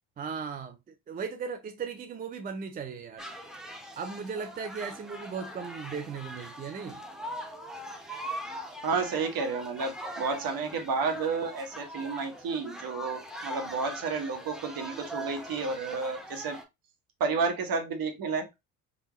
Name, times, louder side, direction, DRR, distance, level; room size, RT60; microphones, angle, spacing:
voice 1, 0.2-3.3 4.0-7.0, right 6 dB, 20° right, 0.4 m, -37 dB
sound 1, 3.2-16.6, equal, ahead, 0.7 m, -41 dB
voice 2, 8.8-16.6 17.2-18.5, right 4 dB, 50° right, 1.1 m, -31 dB
3.5 x 2.3 x 2.9 m
hypercardioid pair, 55°, 46 cm